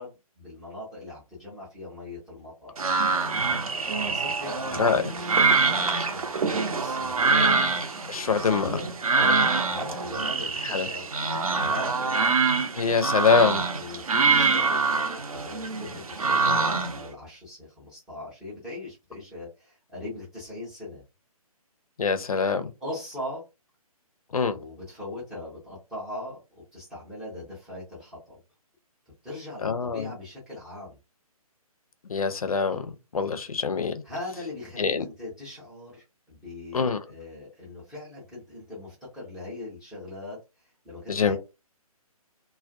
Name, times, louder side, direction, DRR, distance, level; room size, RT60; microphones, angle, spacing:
voice 1, 0.0-2.7 4.0-7.6 8.4-11.1 11.6-12.3 13.8-21.0 22.8-23.4 24.5-28.4 29.2-31.0 34.0-40.4 40.8-41.4, left 2 dB, 5° right, 0.3 m, -40 dB
sound 1, 2.8-17.1, right 4 dB, 70° right, 0.6 m, -25 dB
voice 2, 8.1-8.8 10.6-10.9 12.8-13.6 16.5-16.6 22.0-22.7 24.3-24.6 29.6-30.1 32.1-33.9 34.8-35.0 36.7-37.0 41.1-41.4, left 5 dB, 70° left, 0.5 m, -24 dB
2.3 x 2.1 x 2.5 m
figure-of-eight pair, 135°, 19 cm